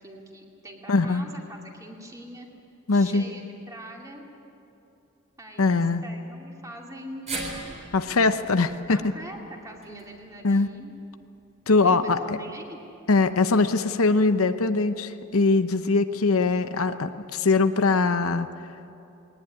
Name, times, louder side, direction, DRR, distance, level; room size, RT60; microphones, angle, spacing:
voice 1, 0.0-2.5 2.9-4.3 5.4-7.9 8.9-10.9 11.8-12.8, right 1 dB, 15° right, 0 dB, 2.6 m, -43 dB
voice 2, 0.9-1.3 2.9-3.3 5.6-6.0 7.9-9.0 10.4-10.7 11.7-12.4 13.1-18.5, left 3 dB, 75° left, 10 dB, 0.8 m, -22 dB
sound 1, 7.3-11.5 11.9-12.0 13.1-13.2, right 2 dB, 30° right, 3.5 m, -40 dB
20.5 x 18.5 x 9.7 m, 2.8 s
head